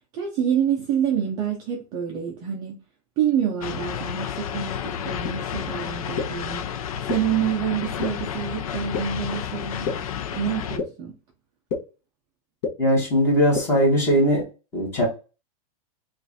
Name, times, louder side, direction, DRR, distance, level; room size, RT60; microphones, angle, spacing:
voice 1, 0.1-2.7 3.2-6.7 7.1-9.9 10.3-11.1, right 9 dB, 20° right, 0.5 m, -27 dB
sound 1, 3.6-10.8, left 8 dB, 70° left, 0.6 m, -31 dB
sound 2, 5.2-5.3 6.2-6.3 7.1-7.2 8.0-8.1 8.9-9.0 9.8-9.9 10.8-10.9 11.7-11.8 12.6-12.7 13.5-13.6, left 5 dB, 40° left, 1.0 m, -25 dB
voice 2, 12.8-14.4 14.7-15.1, equal, 15° left, 1.4 m, -19 dB
5.3 x 2.5 x 2.6 m
supercardioid pair, 180°, 19 cm